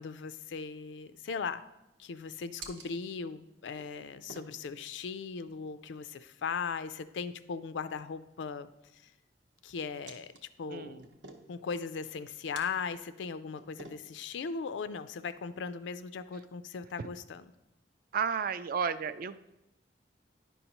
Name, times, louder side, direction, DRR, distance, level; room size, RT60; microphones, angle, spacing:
voice 1, 0.0-1.6 2.0-9.1 9.6-11.0 11.5-17.5, left 5 dB, 85° left, 13 dB, 0.4 m, -38 dB
sound 1, 0.7-16.0, right 3 dB, 85° right, 0.8 m, -56 dB
voice 2, 10.7-11.0 18.1-19.5, right 6 dB, 50° right, 13 dB, 0.3 m, -33 dB
9.9 x 5.4 x 2.9 m, 0.94 s
head